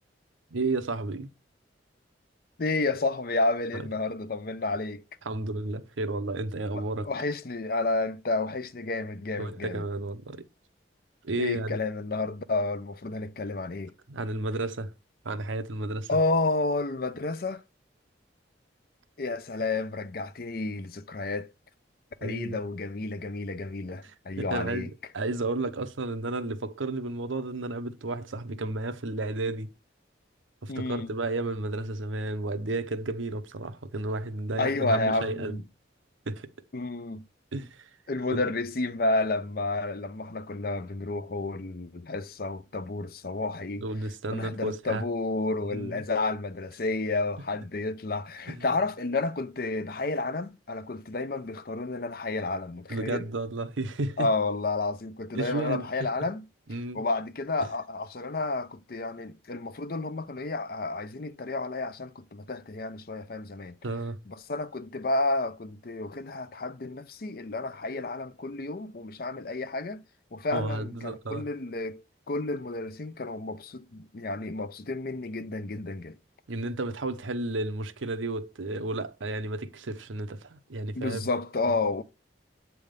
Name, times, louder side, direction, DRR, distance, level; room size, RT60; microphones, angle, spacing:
voice 1, 0.5-1.3 3.7-3.8 5.3-7.1 9.4-10.4 11.2-11.8 14.1-14.9 15.2-16.1 22.2-22.6 24.0-24.1 24.4-29.7 30.6-35.6 36.3-36.5 37.5-37.9 38.3-38.4 43.8-45.0 45.7-46.0 48.5-48.6 52.9-54.3 55.3-55.9 56.7-57.0 63.8-64.2 70.5-71.5 76.5-81.2, right 2 dB, 90° right, 0.8 m, -32 dB
voice 2, 2.6-5.0 6.7-9.8 11.4-13.9 16.1-17.6 19.2-21.5 22.2-24.9 30.7-31.1 34.6-35.6 36.7-37.2 38.1-43.8 44.3-53.3 54.2-56.5 56.9-63.7 64.3-70.0 70.3-76.2 81.0-82.0, left 3 dB, 50° left, 0.6 m, -31 dB
8.2 x 3.6 x 5.2 m
head